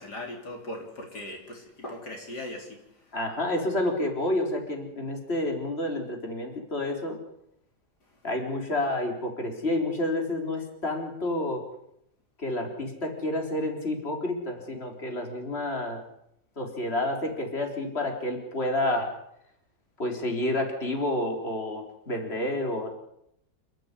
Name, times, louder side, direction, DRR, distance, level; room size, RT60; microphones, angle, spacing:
voice 1, 0.0-3.2, left 1 dB, 70° left, 4.1 m, -39 dB
voice 2, 3.1-7.2 8.2-11.6 12.4-16.0 16.6-19.1 20.0-22.9, left 1 dB, 35° left, 4.2 m, -29 dB
29.0 x 12.5 x 9.9 m
omnidirectional pair, 1.9 m